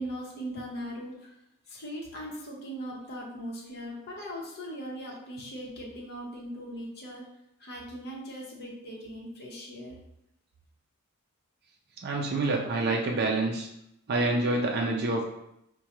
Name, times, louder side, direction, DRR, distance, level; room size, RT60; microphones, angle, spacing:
voice 1, 0.0-1.3 1.7-7.3 7.6-10.0, equal, 50° left, -2 dB, 0.9 m, -39 dB
voice 2, 12.0-13.7 14.1-15.3, right 2 dB, 45° right, 0 dB, 0.4 m, -27 dB
4.5 x 2.2 x 2.9 m, 0.80 s
head